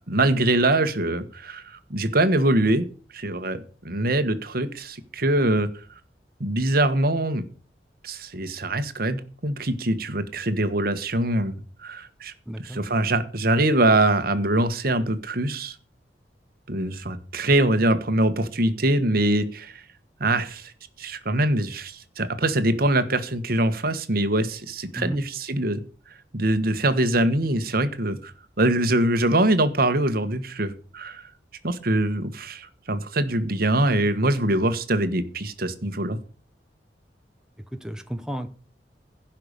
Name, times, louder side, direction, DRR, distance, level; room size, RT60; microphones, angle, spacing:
voice 1, 0.1-2.8 3.1-5.7 6.4-7.4 8.0-12.3 12.6-15.8 16.7-19.8 20.2-20.7 21.0-25.8 26.3-31.2 31.6-36.2, right 1 dB, 55° right, 10 dB, 1.4 m, -23 dB
voice 2, 12.5-12.8 25.0-25.2 37.7-38.5, equal, 5° right, 6 dB, 0.8 m, -32 dB
16.5 x 5.9 x 6.6 m, 0.39 s
head